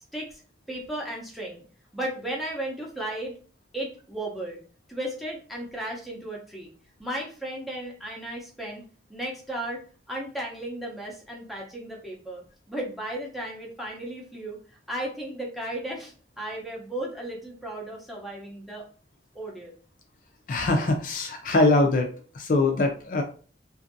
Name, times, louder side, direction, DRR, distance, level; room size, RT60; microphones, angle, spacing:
voice 1, 0.7-1.6 1.9-3.4 3.7-4.6 4.9-6.7 7.0-8.8 9.1-9.8 10.1-14.6 14.9-18.8 19.3-19.8, right 1 dB, ahead, -3 dB, 0.6 m, -35 dB
voice 2, 20.5-22.1 22.3-23.2, left 2 dB, 45° left, 3 dB, 0.4 m, -22 dB
2.6 x 2.5 x 2.5 m, 0.40 s
head